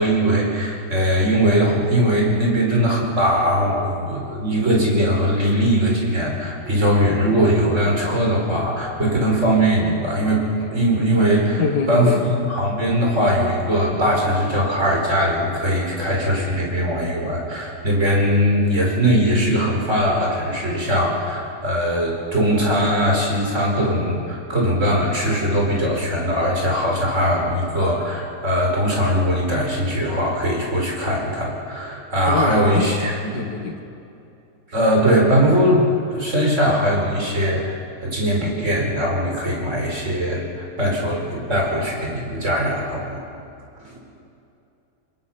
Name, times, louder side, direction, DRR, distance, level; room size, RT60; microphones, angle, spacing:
voice 1, 0.0-33.1 34.7-43.2 43.8-44.0, equal, 45° right, -2 dB, 5.1 m, -20 dB
voice 2, 11.6-12.2 32.3-32.9 33.3-33.8, left 5 dB, 85° left, 5 dB, 2.3 m, -24 dB
27.5 x 21.5 x 5.8 m, 2.6 s
omnidirectional pair, 1.8 m